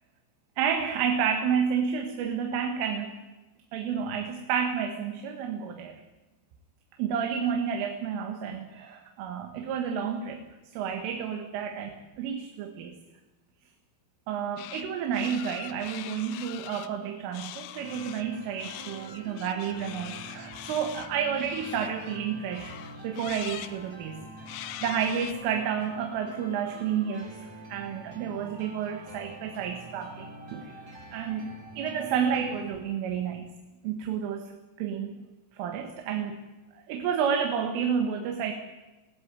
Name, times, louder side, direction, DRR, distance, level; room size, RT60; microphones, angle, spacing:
voice 1, 0.6-3.2 3.7-6.0 7.0-10.4 10.7-13.0 14.3-22.7 23.0-24.6 24.8-27.4 27.7-30.7 31.1-33.5 33.8-34.5 34.8-35.2 35.5-36.4 36.8-38.5, right 7 dB, 90° right, 4 dB, 4.3 m, -30 dB
sound 1, 14.6-14.9 15.1-16.9 17.3-18.3 18.6-22.2 22.5-23.8 24.5-25.3, left 13 dB, 90° left, 3.5 m, -43 dB
sound 2, 17.8-32.8, right 1 dB, 30° right, 2.5 m, -46 dB
23.0 x 16.5 x 9.8 m, 1.1 s
omnidirectional pair, 5.5 m